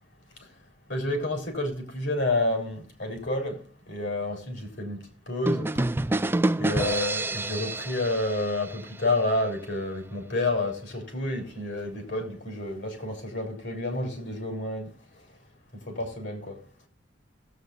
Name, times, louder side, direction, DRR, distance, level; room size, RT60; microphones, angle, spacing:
voice 1, 0.9-5.8 6.6-14.9 15.9-16.6, left 2 dB, 65° left, 3.9 m, -29 dB
sound 1, 5.5-9.2, right 2 dB, 10° right, 0.4 m, -28 dB
18.0 x 8.1 x 2.5 m
head